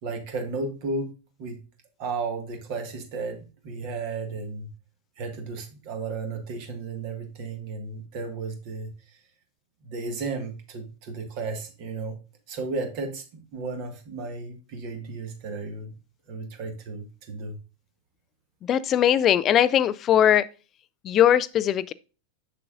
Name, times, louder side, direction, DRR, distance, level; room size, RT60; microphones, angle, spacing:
voice 1, 0.0-1.1 1.4-1.6 2.0-4.7 5.2-9.2 9.8-12.2 12.5-15.9 16.3-17.6, right 3 dB, 45° right, 1.6 m, -34 dB
voice 2, 18.7-20.5 21.0-21.9, left 10 dB, 30° left, 0.4 m, -20 dB
6.8 x 6.7 x 2.5 m
figure-of-eight pair, 90°, 0 cm